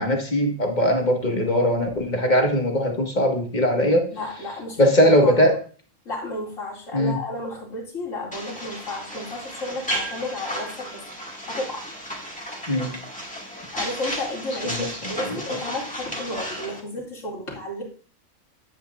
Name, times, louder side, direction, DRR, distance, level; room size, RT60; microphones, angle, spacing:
voice 1, 0.0-4.1 4.8-5.6 6.9-7.2 12.7-13.0 14.6-15.4, equal, 35° left, 2 dB, 1.7 m, -20 dB
voice 2, 4.1-4.8 5.2-5.5 6.0-11.0 11.4-11.9 13.7-17.8, left 1 dB, 70° left, -3 dB, 3.1 m, -32 dB
sound 1, 8.3-16.8, equal, 5° left, 2.1 m, -34 dB
11.0 x 8.5 x 2.5 m, 0.40 s
omnidirectional pair, 1.4 m